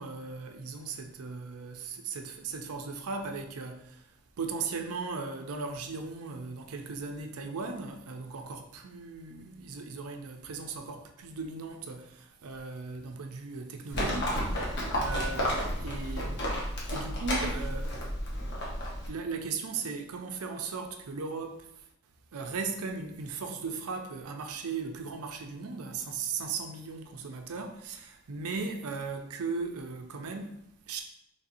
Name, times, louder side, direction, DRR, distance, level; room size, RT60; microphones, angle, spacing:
voice 1, 0.0-16.5 16.9-18.0 19.1-21.9 22.3-31.0, right 4 dB, 80° right, 0.5 m, -37 dB
Livestock farm animals working animals, 13.9-19.1, equal, 50° left, 0.9 m, -31 dB
4.1 x 3.2 x 2.6 m
head